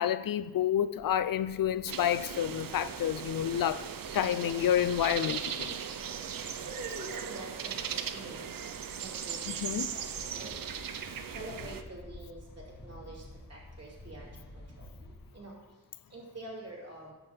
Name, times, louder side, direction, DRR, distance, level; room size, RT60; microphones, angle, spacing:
voice 1, 0.0-3.8 4.1-5.8 9.5-9.9, left 10 dB, 80° left, 0.5 m, -29 dB
Maida Vale - Bike Bell by Church, 1.0-15.4, left 1 dB, 30° left, 1.3 m, -52 dB
sound 1, 1.9-11.8, right 8 dB, 80° right, 0.6 m, -38 dB
voice 2, 6.6-8.5 8.9-9.6 9.9-10.7 11.3-13.2 13.5-14.9 15.3-15.5 16.1-17.1, right 2 dB, 50° right, 2.7 m, -46 dB
11.0 x 3.6 x 6.9 m
wide cardioid pair, 80°, 33 cm